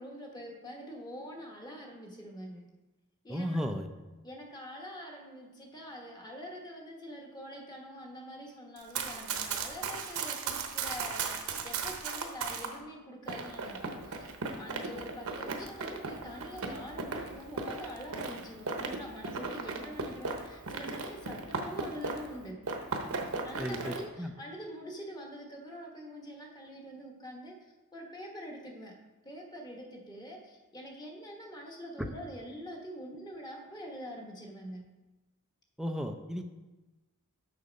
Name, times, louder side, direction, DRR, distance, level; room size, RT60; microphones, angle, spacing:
voice 1, 0.0-2.6 3.2-4.0 4.2-14.3 14.6-22.6 23.4-27.5 27.9-28.9 29.2-34.8, equal, 20° left, 1 dB, 1.3 m, -45 dB
voice 2, 3.3-3.9 23.6-24.3 32.0-32.1 35.8-36.4, equal, ahead, 5 dB, 0.4 m, -34 dB
Run, 8.8-12.7 13.3-22.4 22.6-24.0, right 4 dB, 70° right, 0.9 m, -37 dB
6.7 x 6.4 x 5.2 m, 1.1 s
head